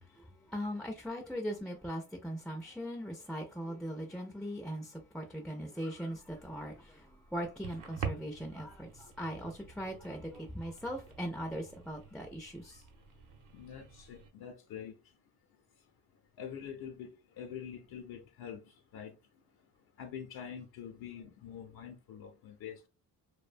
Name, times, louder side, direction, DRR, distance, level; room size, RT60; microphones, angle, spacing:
voice 1, 0.0-12.9, equal, ahead, 0.3 m, -40 dB
sound 1, 6.1-14.3, right 6 dB, 55° right, 0.7 m, -47 dB
voice 2, 13.5-15.0 16.4-19.2 20.0-22.9, left 8 dB, 75° left, 0.6 m, -45 dB
2.6 x 2.1 x 2.4 m
cardioid pair, 110°, 37 cm